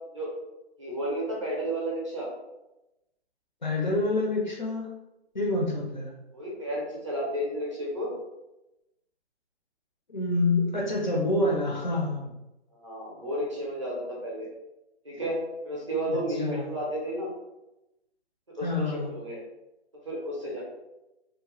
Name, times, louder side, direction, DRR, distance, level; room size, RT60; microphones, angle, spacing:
voice 1, 0.8-2.3 6.3-8.2 12.8-14.5 15.0-17.3 18.6-19.4 20.0-20.6, equal, 30° right, -5 dB, 0.5 m, -32 dB
voice 2, 3.6-4.9 5.3-6.1 10.1-12.3 16.1-16.7 18.6-19.1, left 2 dB, 45° left, -2 dB, 0.4 m, -27 dB
2.4 x 2.1 x 2.9 m, 0.95 s
hypercardioid pair, 170°, 33 cm